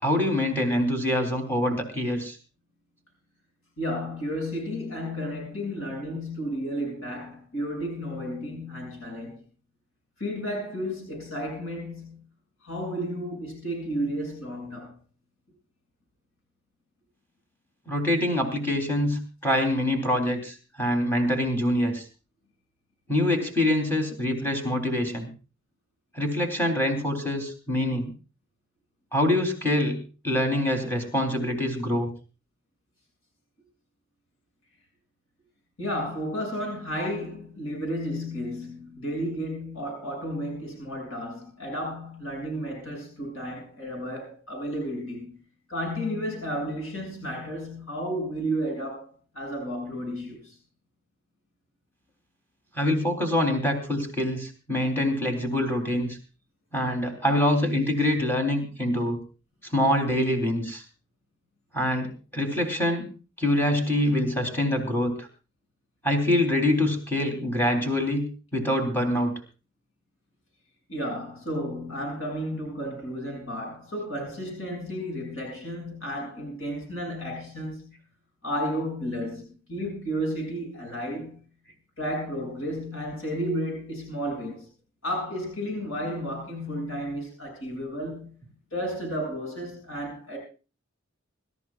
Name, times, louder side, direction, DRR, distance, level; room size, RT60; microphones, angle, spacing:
voice 1, 0.0-2.4 17.9-22.0 23.1-25.3 26.1-28.1 29.1-30.0 30.2-32.1 52.7-56.2 56.7-59.2 59.7-60.8 61.7-63.1 63.4-65.3 66.0-69.4, left 1 dB, 10° left, 3.4 m, -25 dB
voice 2, 3.8-9.4 10.2-12.3 12.6-15.0 35.8-45.4 45.7-50.6 70.9-77.9 78.4-81.4 82.0-84.7 85.0-88.3 88.7-90.4, equal, 85° left, 7.3 m, -32 dB
25.0 x 14.0 x 2.4 m
head